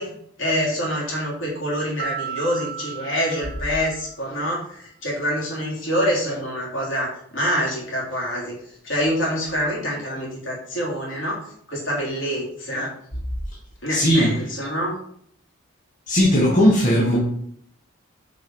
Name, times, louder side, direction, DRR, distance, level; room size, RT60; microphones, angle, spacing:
voice 1, 0.0-8.6 8.8-12.9 13.8-14.9, equal, 65° left, -4 dB, 3.5 m, -26 dB
Mallet percussion, 2.0-4.4, right 9 dB, 45° right, 0.6 m, -34 dB
voice 2, 13.9-14.3 16.1-17.2, equal, 40° left, -5 dB, 1.6 m, -17 dB
6.7 x 5.4 x 4.8 m, 0.67 s
head